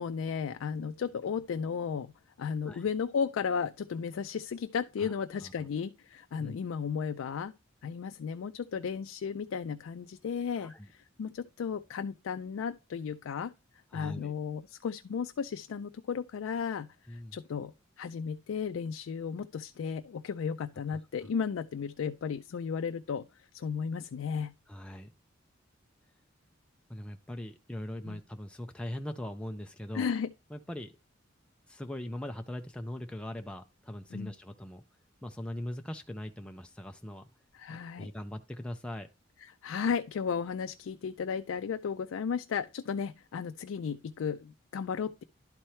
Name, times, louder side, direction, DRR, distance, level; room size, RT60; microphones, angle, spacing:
voice 1, 0.0-7.5 7.8-13.5 13.9-24.5 28.1-28.2 29.9-30.3 34.1-34.3 37.5-38.1 39.4-45.2, left 6 dB, 80° left, 0.4 m, -34 dB
voice 2, 10.6-10.9 13.9-14.3 17.1-17.3 20.9-21.0 24.7-25.1 26.9-30.1 30.5-31.0 31.7-34.8 35.2-37.3 37.7-39.1, left 1 dB, 5° left, 0.4 m, -41 dB
11.5 x 4.3 x 3.1 m
head